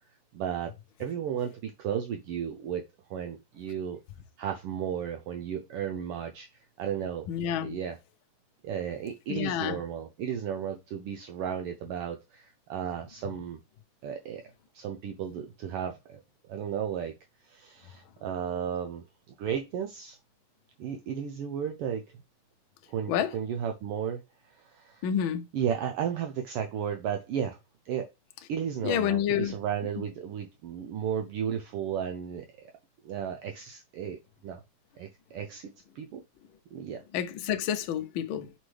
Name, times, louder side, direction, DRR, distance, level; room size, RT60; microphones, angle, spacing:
voice 1, 0.3-0.7 1.0-2.8 3.1-4.0 4.4-6.5 6.8-7.3 7.6-8.0 8.6-13.6 14.0-14.4 14.7-16.2 16.5-17.1 17.4-20.2 20.8-22.1 22.9-25.1 25.5-27.6 27.9-28.1 28.5-32.7 33.0-34.2 34.4-34.6 35.0-35.7 35.9-36.2 36.7-37.0, right 8 dB, 75° right, 1.3 m, -34 dB
voice 2, 7.3-7.8 9.3-9.8 23.1-23.3 25.0-25.4 28.8-29.5 37.1-38.5, left 9 dB, 80° left, 1.1 m, -28 dB
5.7 x 5.3 x 3.2 m
omnidirectional pair, 3.3 m